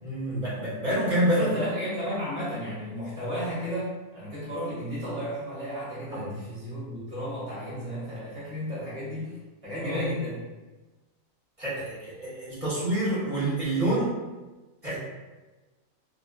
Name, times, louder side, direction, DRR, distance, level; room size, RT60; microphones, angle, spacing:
voice 1, 0.0-1.5 6.1-6.3 9.8-10.0 11.6-14.1 14.8-15.0, right 1 dB, 30° right, -10 dB, 0.8 m, -27 dB
voice 2, 1.4-9.3 9.6-10.4, equal, 20° left, -10 dB, 0.3 m, -33 dB
2.4 x 2.4 x 2.2 m, 1.2 s
omnidirectional pair, 1.4 m